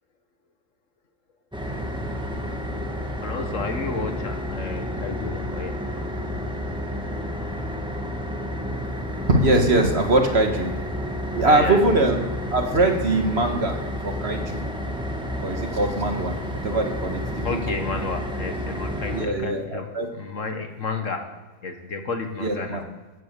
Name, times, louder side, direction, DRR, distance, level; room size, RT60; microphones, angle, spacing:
sound 1, 1.5-19.3, left 1 dB, 5° right, 1.6 m, -30 dB
voice 1, 3.2-5.8 11.4-11.8 17.4-19.9 20.1-21.3 21.6-22.8, left 4 dB, 60° left, 6 dB, 1.8 m, -31 dB
voice 2, 9.3-10.7 11.3-12.2 12.5-14.6 15.4-16.4 16.6-17.6 19.1-20.1 22.4-22.8, right 2 dB, 45° right, 4 dB, 1.8 m, -22 dB
15.5 x 8.5 x 6.8 m, 1.2 s
omnidirectional pair, 1.5 m